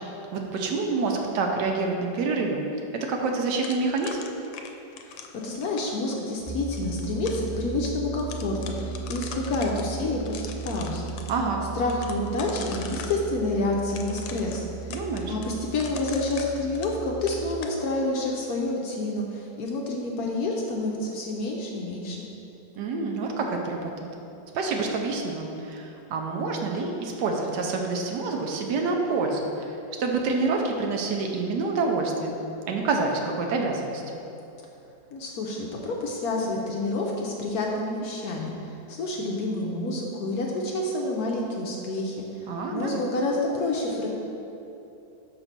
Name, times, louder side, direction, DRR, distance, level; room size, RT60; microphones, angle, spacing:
voice 1, 0.3-2.6 2.9-4.3 11.3-11.7 14.9-15.3 22.8-23.9 24.5-32.4 32.7-34.0 42.5-43.0, right 3 dB, 75° right, 2 dB, 1.2 m, -27 dB
sound 1, 3.6-6.0 6.7-7.5 7.8-7.9 8.2-9.8 10.2-11.3 11.9-13.2 13.9-17.0 17.3-17.8, left 7 dB, 90° left, 1.3 m, -41 dB
voice 2, 5.4-11.1 11.7-14.9 15.3-22.3 35.1-38.5 38.9-44.1, left 2 dB, 65° left, -1 dB, 1.0 m, -28 dB
sound 2, 6.4-17.6, right 5 dB, 55° right, 1.3 m, -37 dB
5.4 x 4.0 x 5.9 m, 3.0 s
omnidirectional pair, 2.0 m